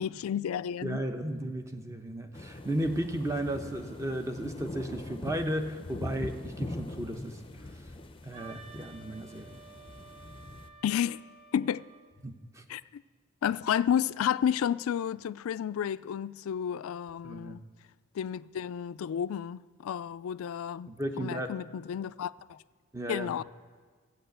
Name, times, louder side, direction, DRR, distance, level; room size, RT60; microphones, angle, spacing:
voice 1, 0.0-1.0 10.8-11.2 11.5-11.8 12.7-13.0 13.4-17.6 18.1-20.9 21.2-22.6 23.1-23.4, left 9 dB, 80° left, 0.3 m, -31 dB
voice 2, 0.8-7.4 7.7-7.8 8.2-9.6 12.2-12.6 17.2-17.6 20.9-21.5 22.9-23.3, right 1 dB, 15° right, 0.8 m, -34 dB
sound 1, 2.3-10.7, left 2 dB, 25° left, 0.6 m, -42 dB
Wind instrument woodwind instrument, 8.3-12.2, right 5 dB, 30° right, 1.1 m, -52 dB
13.0 x 8.3 x 7.9 m
head